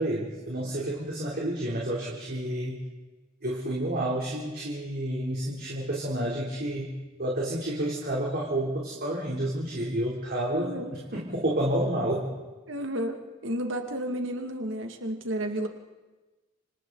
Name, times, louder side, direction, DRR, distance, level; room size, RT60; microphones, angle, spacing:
voice 1, 0.0-2.8 3.4-6.9 7.2-12.3, right 1 dB, 50° right, -4 dB, 3.5 m, -30 dB
voice 2, 10.5-10.9 12.7-15.7, right 1 dB, 70° right, 4 dB, 2.3 m, -32 dB
29.5 x 26.0 x 4.1 m, 1.2 s
head